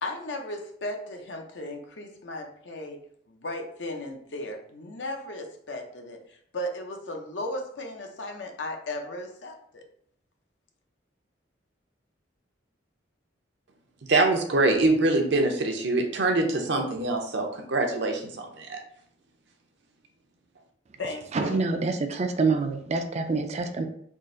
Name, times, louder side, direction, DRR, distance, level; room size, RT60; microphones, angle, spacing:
voice 1, 0.0-3.0 3.3-9.8 21.0-21.6, left 1 dB, 65° left, 3 dB, 0.7 m, -36 dB
voice 2, 14.0-18.8, right 2 dB, 65° right, 3 dB, 0.7 m, -24 dB
voice 3, 21.3-23.8, right 3 dB, 35° right, 7 dB, 0.4 m, -26 dB
3.7 x 2.5 x 3.8 m, 0.65 s
head